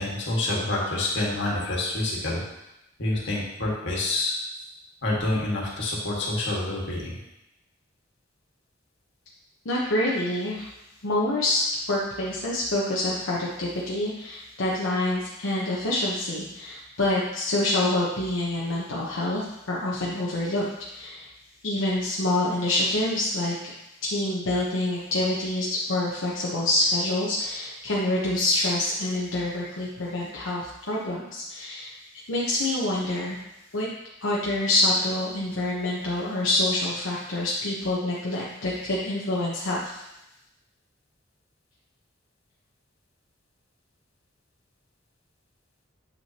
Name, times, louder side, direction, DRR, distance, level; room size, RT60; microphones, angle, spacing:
voice 1, 0.0-2.4 3.0-4.3 5.0-7.2, left 2 dB, 65° left, -4 dB, 1.8 m, -27 dB
voice 2, 9.6-10.7 11.0-11.6 11.9-20.6 20.9-21.3 21.6-23.7 24.0-32.0 32.3-33.4 33.7-33.9 34.2-40.0, left 1 dB, 85° left, -5 dB, 1.0 m, -26 dB
7.7 x 6.0 x 2.9 m, 0.89 s
head